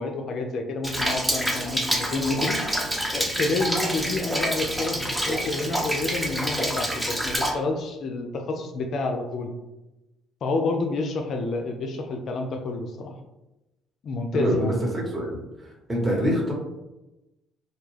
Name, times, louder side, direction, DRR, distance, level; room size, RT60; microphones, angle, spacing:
voice 1, 0.0-2.7 3.1-9.5 10.4-13.1 14.0-14.8, left 3 dB, 55° left, 4 dB, 0.3 m, -29 dB
Rain, 0.8-7.5, equal, 5° right, 0.6 m, -27 dB
voice 2, 14.3-15.4 15.9-16.5, equal, 20° right, -2 dB, 1.0 m, -25 dB
2.3 x 2.2 x 3.2 m, 0.97 s
hypercardioid pair, 55°, 0 cm